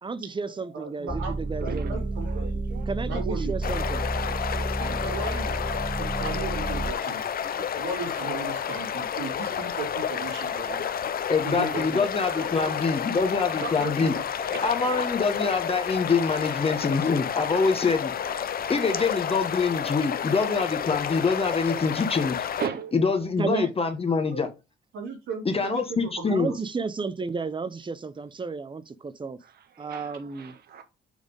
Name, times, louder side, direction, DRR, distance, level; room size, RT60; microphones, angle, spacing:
voice 1, 0.0-2.1 2.9-4.0 23.4-23.7 26.3-29.4 29.8-30.5, right 4 dB, 25° right, 0.8 m, -32 dB
voice 2, 0.7-3.8 4.0-4.1 4.8-5.8 6.2-7.2 7.8-10.8 11.4-12.1 12.5-12.7 13.5-14.2 24.3-24.4 24.9-26.5, right 3 dB, 85° right, 3.2 m, -36 dB
sound 1, 1.1-6.9, right 2 dB, 5° right, 0.4 m, -30 dB
voice 3, 2.3-2.8 4.2-5.4 5.8-5.9 10.7-10.9 12.4-12.5 18.6-18.7 22.6-22.9 29.9-30.1 30.4-30.8, right 7 dB, 55° right, 0.8 m, -37 dB
sound 2, 3.6-22.7, left 8 dB, 50° left, 0.7 m, -30 dB
voice 4, 11.3-14.1 14.6-18.1 18.7-22.4 22.9-24.5 25.4-26.5, left 4 dB, 30° left, 1.1 m, -25 dB
6.5 x 3.4 x 5.2 m
cardioid pair, 90°, 20 cm